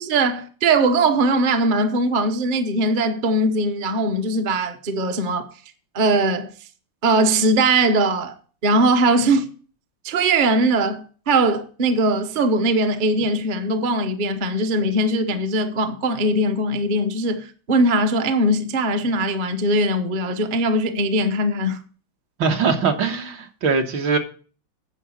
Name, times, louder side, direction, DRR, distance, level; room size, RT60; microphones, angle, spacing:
voice 1, 0.1-5.5 5.9-6.5 7.0-8.3 8.6-9.5 10.0-21.8, right 2 dB, 45° right, 0.6 m, -20 dB
voice 2, 22.4-24.2, right 5 dB, 70° right, 1.9 m, -21 dB
9.8 x 5.2 x 7.0 m
omnidirectional pair, 2.2 m